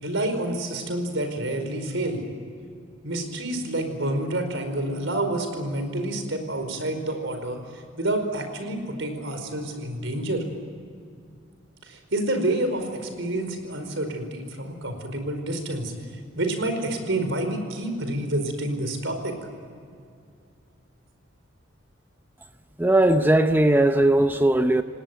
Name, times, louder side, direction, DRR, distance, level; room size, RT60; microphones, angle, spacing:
voice 1, 0.0-2.2 3.0-10.4 11.8-15.9 16.4-19.3, right 1 dB, 70° right, 4.9 m, -28 dB
voice 2, 22.8-24.8, right 1 dB, 10° right, 0.7 m, -19 dB
28.5 x 18.5 x 9.4 m
head